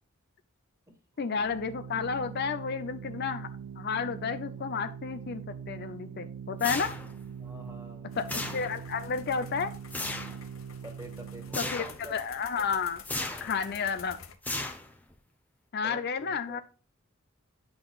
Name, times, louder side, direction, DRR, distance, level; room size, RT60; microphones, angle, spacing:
voice 1, 1.2-3.5 3.8-6.9 8.2-9.7 11.6-13.0 13.4-14.2 15.7-16.6, left 5 dB, 50° left, 10 dB, 0.5 m, -31 dB
Organ, 1.2-11.9, right 7 dB, 65° right, 0.3 m, -42 dB
sound 1, 6.6-7.3 8.3-9.0 9.9-10.4 11.5-12.0 13.0-13.6 14.4-15.1, left 2 dB, 10° left, 0.8 m, -35 dB
voice 2, 7.4-8.1 10.8-12.6 13.2-13.5 13.8-14.0 15.8-16.6, right 1 dB, 15° right, 4 dB, 1.7 m, -48 dB
sound 2, 8.1-14.3, left 7 dB, 70° left, 0.9 m, -50 dB
9.5 x 5.9 x 2.4 m, 0.37 s
head